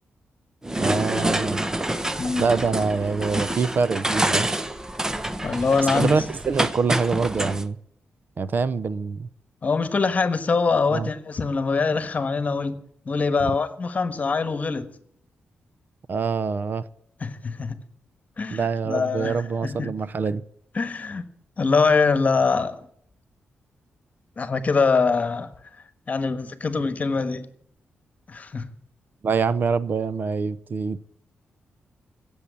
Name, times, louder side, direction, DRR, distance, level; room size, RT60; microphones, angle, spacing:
sound 1, 0.6-7.6, right 1 dB, 15° right, 0.9 m, -27 dB
voice 1, 0.8-1.7 2.4-4.5 5.9-7.8 8.4-9.3 10.9-11.1 16.1-16.9 18.5-20.4 29.2-31.0, right 5 dB, 50° right, 0.7 m, -25 dB
voice 2, 2.2-2.5 5.4-6.2 9.6-12.8 13.0-14.9 17.2-17.8 18.4-19.9 20.7-21.2 21.6-22.9 24.4-25.5 26.1-27.5 28.3-28.7, left 4 dB, 40° left, 1.3 m, -23 dB
16.5 x 7.2 x 8.9 m
cardioid pair, 100°, 4 cm